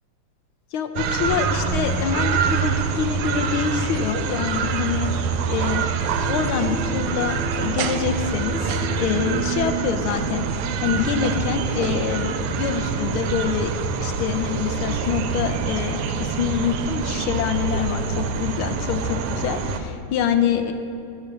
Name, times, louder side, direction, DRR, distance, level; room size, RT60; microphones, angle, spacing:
voice 1, 0.7-5.1 5.5-10.5 10.8-13.7 14.0-20.7, left 7 dB, 80° left, 6 dB, 1.5 m, -26 dB
sound 1, 1.0-19.8, right 5 dB, 85° right, 1.6 m, -25 dB
8.5 x 8.3 x 6.5 m, 2.7 s
omnidirectional pair, 2.4 m